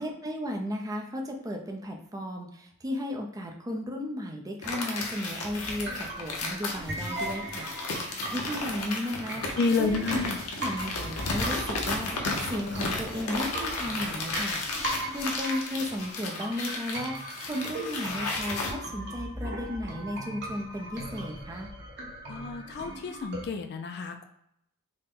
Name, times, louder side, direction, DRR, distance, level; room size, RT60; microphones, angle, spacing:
voice 1, 0.0-10.2 10.6-21.7, equal, 15° right, 1 dB, 0.5 m, -35 dB
sound 1, 4.6-18.7, left 3 dB, 75° left, 0.8 m, -34 dB
sound 2, 5.4-23.4, right 1 dB, 55° right, 1.1 m, -39 dB
voice 2, 9.6-10.4 22.3-24.2, left 4 dB, 50° left, 6 dB, 0.4 m, -29 dB
4.1 x 2.1 x 3.6 m, 0.77 s
head